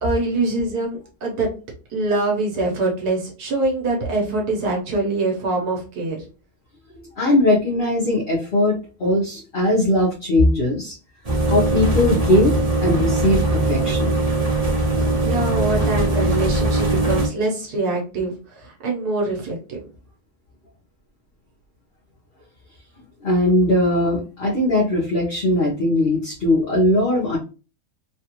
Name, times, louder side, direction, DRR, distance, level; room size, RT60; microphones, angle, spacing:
voice 1, 0.0-1.5 1.9-6.2 15.2-19.8, right 2 dB, 75° right, -1 dB, 1.5 m, -24 dB
voice 2, 6.9-10.9 11.5-14.2 23.2-27.4, left 1 dB, 40° left, -6 dB, 1.0 m, -20 dB
sound 1, 11.2-17.3, right 2 dB, 25° right, 1.2 m, -20 dB
3.3 x 2.4 x 2.9 m, 0.35 s
omnidirectional pair, 1.7 m